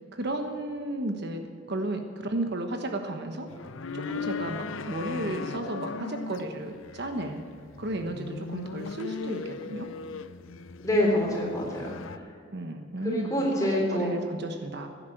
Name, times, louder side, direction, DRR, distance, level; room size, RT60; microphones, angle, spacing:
voice 1, 0.1-1.4 1.7-3.5 3.9-7.4 7.8-9.9 12.5-13.3 13.6-14.9, right 1 dB, 55° right, 5 dB, 1.1 m, -33 dB
sound 1, 3.5-12.2, left 4 dB, 70° left, 0.6 m, -38 dB
voice 2, 10.8-12.3 13.0-14.1, equal, 15° left, -2 dB, 3.7 m, -26 dB
16.0 x 10.5 x 7.8 m, 2.1 s
head